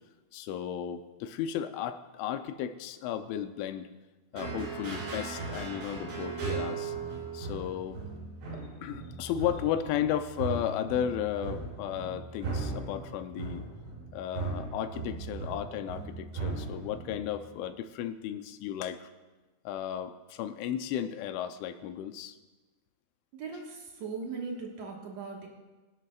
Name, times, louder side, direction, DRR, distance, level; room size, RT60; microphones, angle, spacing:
voice 1, 0.3-3.9 4.3-7.0 7.3-8.0 8.5-13.6 14.1-19.1 19.7-22.4, left 10 dB, 85° left, 9 dB, 3.2 m, -34 dB
sound 1, 4.3-17.5, right 4 dB, 85° right, 5.7 m, -38 dB
voice 2, 23.3-25.5, right 4 dB, 65° right, 0 dB, 1.7 m, -39 dB
24.0 x 11.0 x 2.4 m, 1.2 s
omnidirectional pair, 5.4 m